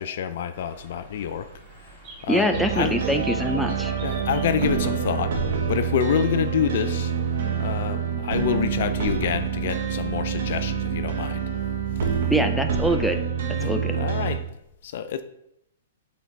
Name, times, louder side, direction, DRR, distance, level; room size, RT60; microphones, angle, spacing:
voice 1, 0.0-1.5 2.2-2.5 2.7-3.1 4.0-5.4 5.7-7.1 7.6-11.4 12.0-12.2 13.6-14.4 14.8-15.2, left 8 dB, 60° left, 0.5 m, -27 dB
Bird, 0.5-7.7, right 2 dB, 45° right, 1.9 m, -47 dB
voice 2, 2.3-3.9 12.3-13.2 13.6-14.0, equal, ahead, 0.5 m, -24 dB
sound 1, 2.5-14.4, right 7 dB, 65° right, 1.0 m, -26 dB
7.2 x 3.4 x 4.2 m
hypercardioid pair, 135°, 0 cm